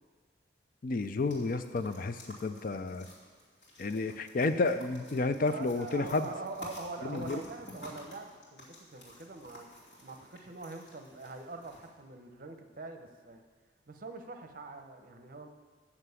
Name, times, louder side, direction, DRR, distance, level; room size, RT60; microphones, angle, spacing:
voice 1, 0.8-3.1 3.8-6.3 7.0-7.4, left 3 dB, 50° left, 10 dB, 0.5 m, -31 dB
sound 1, 1.0-11.9, equal, 75° left, 2.9 m, -52 dB
voice 2, 5.5-9.7 10.0-13.4 13.9-15.5, right 3 dB, 50° right, 6 dB, 0.8 m, -44 dB
7.6 x 7.1 x 8.1 m, 1.5 s
head